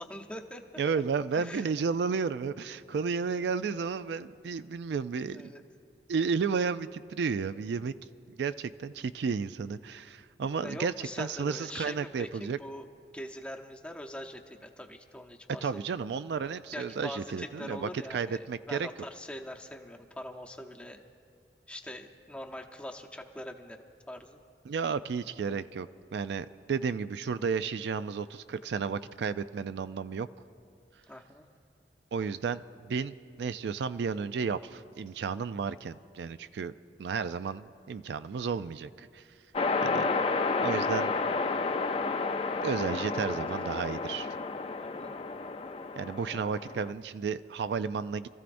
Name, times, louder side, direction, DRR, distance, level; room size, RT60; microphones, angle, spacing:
voice 1, 0.0-0.6 1.3-1.6 5.3-5.6 10.6-12.9 13.1-15.7 16.7-21.0 21.7-24.4 31.1-31.5 42.9-43.7 44.8-45.2, left 1 dB, 5° left, 2 dB, 0.8 m, -43 dB
voice 2, 0.8-5.4 6.1-7.9 8.4-12.6 15.6-18.9 24.7-30.3 32.1-36.7 37.0-39.2 39.8-40.1 40.6-41.1 42.6-44.3 46.0-48.3, right 5 dB, 70° right, 13 dB, 0.4 m, -32 dB
sound 1, 39.5-46.9, left 4 dB, 35° left, 0.5 m, -31 dB
28.0 x 14.5 x 2.6 m, 2.3 s
head